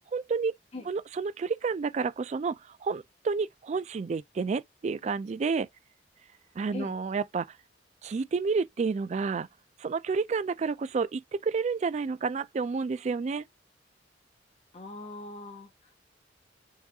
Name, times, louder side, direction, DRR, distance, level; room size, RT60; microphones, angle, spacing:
voice 1, 0.1-0.6 0.9-2.6 2.8-5.7 6.6-7.5 8.0-9.5 9.8-13.4, right 5 dB, 40° right, 0.3 m, -30 dB
voice 2, 14.7-15.9, left 2 dB, 35° left, 1.2 m, -41 dB
4.7 x 2.7 x 2.3 m
head